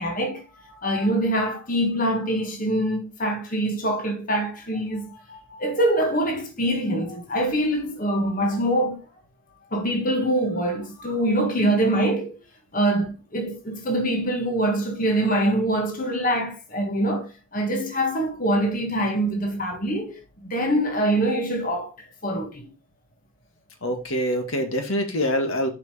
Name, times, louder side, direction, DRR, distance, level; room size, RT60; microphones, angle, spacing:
voice 1, 0.0-9.0 9.7-12.4 12.7-21.9 22.2-22.7, right 1 dB, 40° left, 1.6 m, -24 dB
voice 2, 23.8-25.7, equal, 85° left, 1.8 m, -25 dB
7.0 x 5.0 x 5.0 m
head